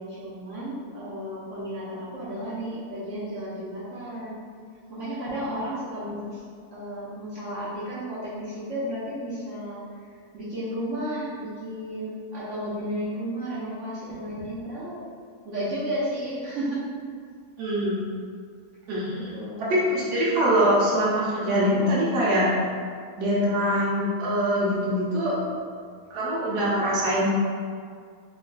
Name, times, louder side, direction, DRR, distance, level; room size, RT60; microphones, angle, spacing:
voice 1, 0.0-4.4 4.9-6.4 6.7-9.8 10.3-15.1 15.4-16.9 19.3-19.7, equal, 60° right, -9 dB, 0.9 m, -33 dB
voice 2, 17.6-18.0 18.9-22.5 23.2-25.3 26.1-27.3, equal, 90° right, -7 dB, 1.3 m, -23 dB
4.5 x 2.4 x 2.2 m, 2.1 s
omnidirectional pair, 1.7 m